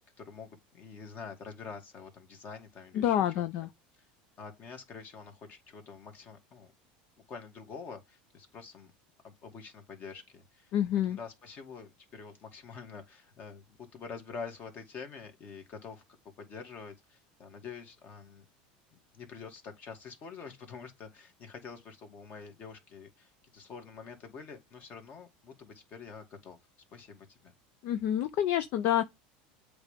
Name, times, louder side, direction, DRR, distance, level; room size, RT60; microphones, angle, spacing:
voice 1, 0.2-3.5 4.4-6.7 7.3-8.9 9.2-10.7 11.0-16.0 16.4-18.5 19.1-26.6 26.9-27.5, left 5 dB, 40° left, 2.4 m, -46 dB
voice 2, 2.9-3.7 10.7-11.2 27.8-29.0, left 11 dB, 55° left, 0.7 m, -28 dB
7.9 x 3.5 x 5.2 m
supercardioid pair, 120°, 4 cm